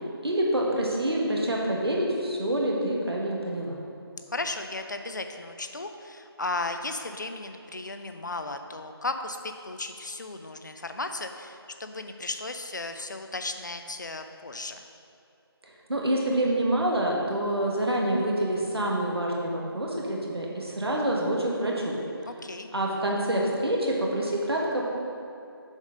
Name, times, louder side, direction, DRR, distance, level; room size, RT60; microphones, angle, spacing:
voice 1, 0.2-3.7 15.6-22.0 22.7-24.9, right 1 dB, 75° right, -2 dB, 1.5 m, -27 dB
voice 2, 4.3-14.8 22.3-22.7, left 2 dB, 50° left, 7 dB, 0.5 m, -35 dB
7.0 x 4.1 x 5.0 m, 2.7 s
figure-of-eight pair, 165°, 13 cm